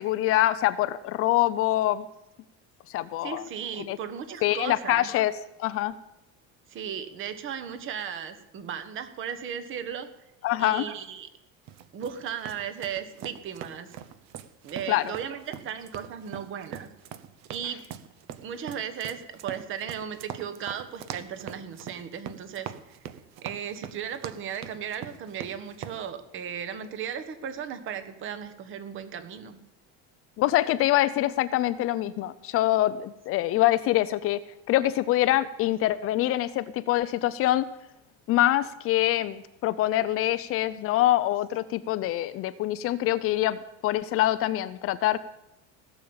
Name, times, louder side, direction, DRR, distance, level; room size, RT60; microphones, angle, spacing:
voice 1, 0.0-2.1 2.9-3.4 3.9-4.0 4.4-5.3 5.6-5.9 10.4-10.9 14.9-15.1 30.4-34.4 34.7-37.7 38.3-45.2, left 14 dB, 45° left, 14 dB, 0.5 m, -25 dB
voice 2, 3.2-5.1 6.7-10.1 10.6-11.3 11.9-13.9 14.6-16.9 17.5-17.8 18.4-23.1 23.4-29.6, right 8 dB, 40° right, 10 dB, 1.3 m, -36 dB
sound 1, 11.7-26.0, right 10 dB, 55° right, 0.9 m, -42 dB
16.5 x 7.1 x 8.7 m, 0.90 s
cardioid pair, 170°, 33 cm